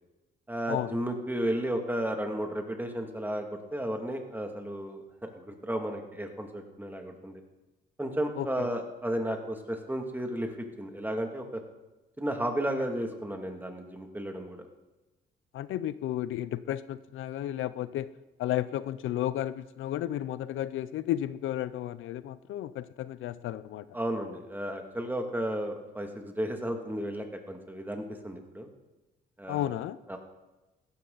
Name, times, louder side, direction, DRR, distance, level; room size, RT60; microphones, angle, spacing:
voice 1, 0.5-7.4 8.0-11.6 12.2-14.7 23.9-28.7 29.4-29.8 30.1-30.2, right 1 dB, 10° right, 3 dB, 2.4 m, -33 dB
voice 2, 15.5-18.1 18.4-23.9 29.5-30.0, left 12 dB, 80° left, 15 dB, 0.6 m, -33 dB
15.5 x 12.5 x 4.0 m, 1.1 s
cardioid pair, 75°, 21 cm